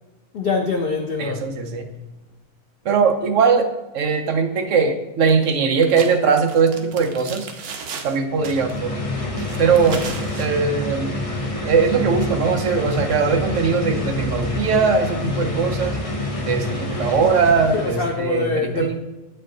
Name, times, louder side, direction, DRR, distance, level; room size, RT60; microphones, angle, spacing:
voice 1, 0.3-1.5 17.7-19.0, left 4 dB, 85° left, 4 dB, 0.5 m, -24 dB
voice 2, 1.2-1.9 2.8-3.7 3.9-7.5 8.0-8.9 9.6-10.0 10.4-11.1 11.6-16.0 16.4-19.0, right 5 dB, 60° right, 5 dB, 1.0 m, -20 dB
sound 1, 5.3-5.6 5.8-8.2 8.4-8.8 9.4-10.5, right 5 dB, 80° right, 1.3 m, -35 dB
sound 2, 8.2-18.3, left 2 dB, 25° left, 0.9 m, -27 dB
8.3 x 4.4 x 3.8 m, 1.1 s
omnidirectional pair, 1.6 m